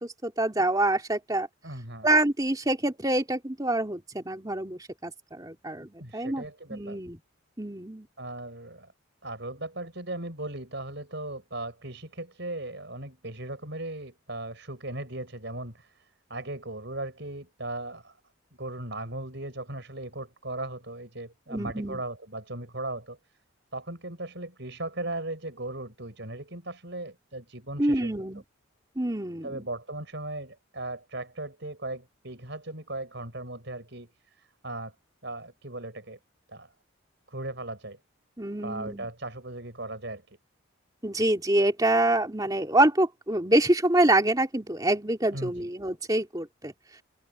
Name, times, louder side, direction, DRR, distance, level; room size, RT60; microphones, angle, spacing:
voice 1, 0.0-1.5 2.0-7.2 7.6-8.1 21.5-22.0 27.8-28.4 29.0-29.7 38.4-39.1 41.0-46.7, right 1 dB, 20° right, 2.9 m, -26 dB
voice 2, 1.6-2.1 6.0-7.0 8.2-8.9 9.2-18.2 18.6-23.2 23.7-28.2 29.4-34.9 35.2-36.2 36.5-36.7 37.3-38.0 38.6-40.4 45.3-45.7, right 2 dB, 55° right, 6.9 m, -37 dB
head